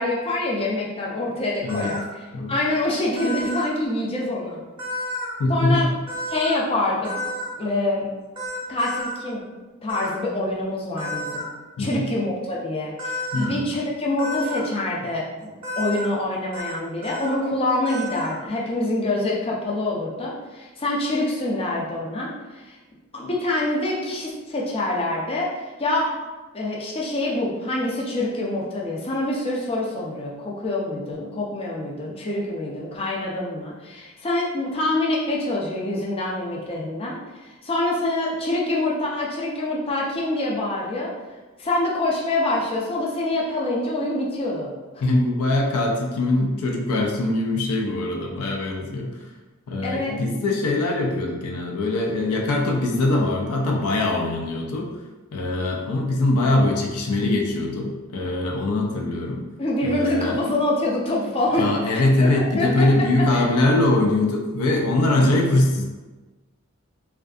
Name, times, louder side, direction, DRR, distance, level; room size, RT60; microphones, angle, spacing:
voice 1, 0.0-4.6 5.5-5.9 6.3-7.1 7.6-8.1 8.7-9.4 9.8-11.5 11.8-22.8 23.1-26.2 26.5-41.1 41.6-45.0 49.8-50.1 59.6-62.9 63.3-63.5, left 2 dB, 25° left, -4 dB, 0.4 m, -26 dB
voice 2, 1.6-2.0 2.3-2.5 5.4-6.0 11.8-12.0 13.3-13.7 45.0-49.2 49.7-54.9 55.3-59.4 59.8-60.4 61.6-65.8, left 2 dB, 85° left, 0 dB, 0.4 m, -22 dB
sound 1, 1.7-2.0 3.2-3.7 4.8-5.3 6.1-6.6 7.0-7.5 8.4-9.1 9.9-10.1 11.0-11.4 13.0-13.5 14.2-14.6 15.6-16.1 16.5-16.8 17.0-17.3 17.9-18.4, left 1 dB, 25° right, 0.8 m, -31 dB
2.5 x 2.3 x 2.3 m, 1.2 s
head